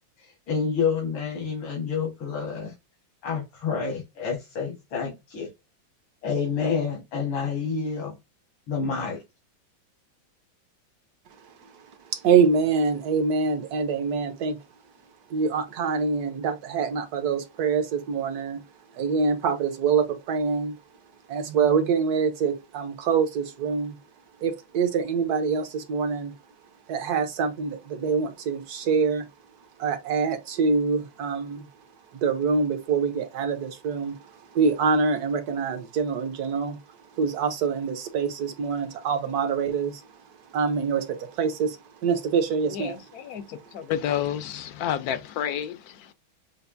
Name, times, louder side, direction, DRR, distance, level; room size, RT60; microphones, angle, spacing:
voice 1, 0.2-2.7 3.2-5.5 6.2-8.2 8.7-9.2, left 5 dB, 85° left, 2.4 m, -28 dB
voice 2, 11.4-14.6 15.3-18.6 18.9-20.8 21.3-24.0 24.4-26.3 26.9-29.3 29.8-31.7 32.1-36.8 37.1-40.1 40.5-43.0, right 5 dB, 60° right, 1.1 m, -25 dB
voice 3, 42.7-46.1, left 10 dB, 70° left, 0.9 m, -30 dB
6.7 x 2.5 x 2.6 m
omnidirectional pair, 2.2 m